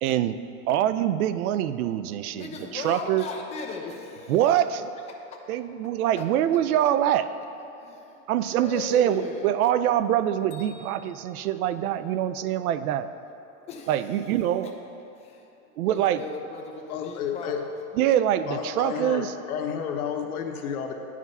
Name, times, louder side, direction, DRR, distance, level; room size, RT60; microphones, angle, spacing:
voice 1, 0.0-0.4 0.7-3.3 4.3-4.9 5.5-7.3 8.3-13.1 13.9-14.7 15.8-16.3 18.0-19.3, right 11 dB, 90° right, 13 dB, 0.5 m, -24 dB
voice 2, 2.3-4.4 6.2-6.3 7.8-8.2 8.5-9.6 13.7-14.2 14.6-14.7 15.1-15.5 15.9-18.2, left 4 dB, 15° left, 1 dB, 0.6 m, -38 dB
Bell, 10.5-12.5, left 4 dB, 45° left, 1.5 m, -54 dB
voice 3, 16.9-17.7 18.5-20.9, left 7 dB, 85° left, 4 dB, 1.0 m, -31 dB
9.3 x 5.0 x 5.5 m, 2.8 s
supercardioid pair, 150°, 42 cm